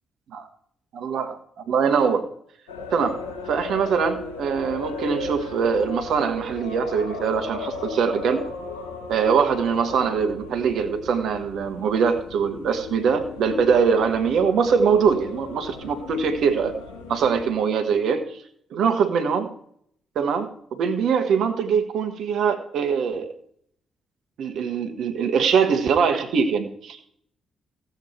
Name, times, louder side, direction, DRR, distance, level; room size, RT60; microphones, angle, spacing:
voice 1, 0.9-1.4 1.7-2.3 2.9-3.2 3.5-8.5 9.1-16.8 17.1-18.4 18.7-19.5 20.1-23.3 24.4-27.1, right 6 dB, 65° right, 8 dB, 1.3 m, -22 dB
sound 1, 2.7-17.5, left 3 dB, 80° left, 2.7 m, -36 dB
15.5 x 8.1 x 4.4 m, 0.64 s
hypercardioid pair, 40°, 0 cm